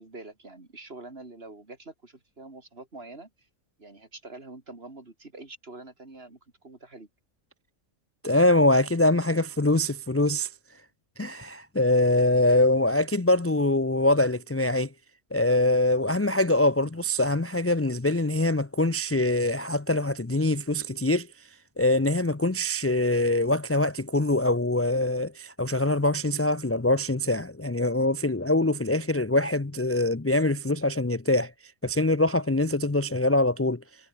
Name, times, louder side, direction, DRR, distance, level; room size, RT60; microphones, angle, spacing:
voice 1, 0.0-3.5 3.8-7.1, right 2 dB, 45° right, 3.6 m, -45 dB
voice 2, 8.2-10.5 11.2-14.9 15.3-21.3 21.8-31.5 31.8-33.8, left 2 dB, 20° left, 0.4 m, -23 dB
omnidirectional pair, 1.5 m